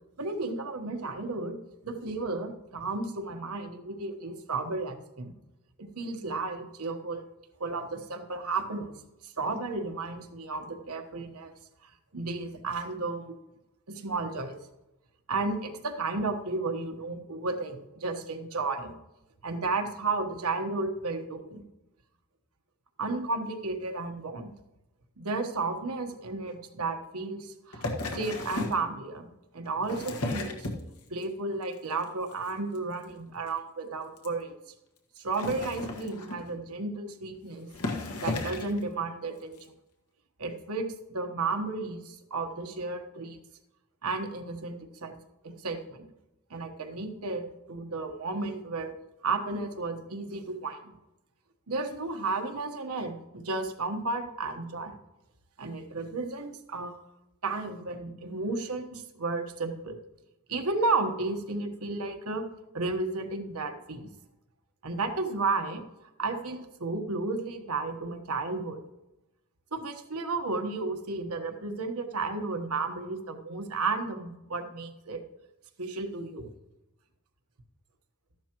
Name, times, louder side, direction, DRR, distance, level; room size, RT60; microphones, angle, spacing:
voice 1, 0.2-1.6 1.8-5.3 5.8-7.2 7.6-9.0 9.2-11.5 12.1-13.3 13.9-14.6 15.3-18.9 19.4-21.6 23.0-24.5 25.2-29.3 29.5-30.7 31.1-34.5 35.2-37.7 38.2-39.6 40.4-43.4 44.0-45.2 45.4-46.1 46.5-48.9 49.2-50.9 51.7-55.0 55.6-56.9 57.4-60.0 60.5-62.4 62.7-64.1 64.8-65.8 66.2-68.8 69.7-75.2 75.8-76.5, right 3 dB, 85° right, 6 dB, 1.3 m, -33 dB
sound 1, 27.7-28.8 29.7-31.2 31.6-32.0 32.3-32.5 32.7-32.8 33.0-33.1 33.5-33.6 34.2-34.3 35.2-36.6 37.3-37.4 37.7-38.8 39.6-39.7, left 2 dB, 85° left, 1.6 m, -34 dB
13.5 x 11.0 x 3.0 m, 0.95 s
head